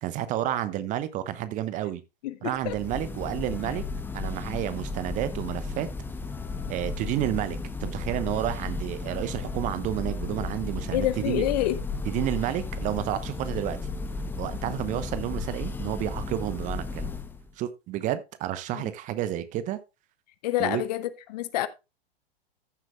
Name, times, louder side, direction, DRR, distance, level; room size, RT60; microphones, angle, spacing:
voice 1, 0.0-2.0 2.4-3.8 4.1-5.9 6.7-11.4 12.1-13.8 14.4-17.1 17.6-19.8 20.6-20.8, right 13 dB, 25° right, 0.9 m, -30 dB
voice 2, 2.2-2.8 10.9-11.8 18.7-18.9 20.4-21.7, left 14 dB, 45° left, 0.9 m, -28 dB
Church bell, 2.6-17.5, left 3 dB, 5° left, 0.8 m, -34 dB
14.5 x 7.6 x 2.3 m
figure-of-eight pair, 100°, 30 cm